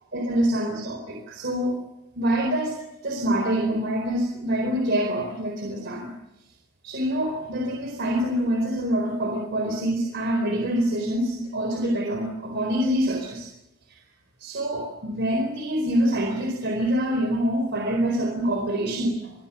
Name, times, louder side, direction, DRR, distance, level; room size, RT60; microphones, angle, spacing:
voice 1, 0.1-1.8 2.2-2.7 3.0-6.1 6.8-13.5 14.4-19.3, equal, 50° right, 2 dB, 4.4 m, -25 dB
27.5 x 20.0 x 7.2 m, 0.91 s
head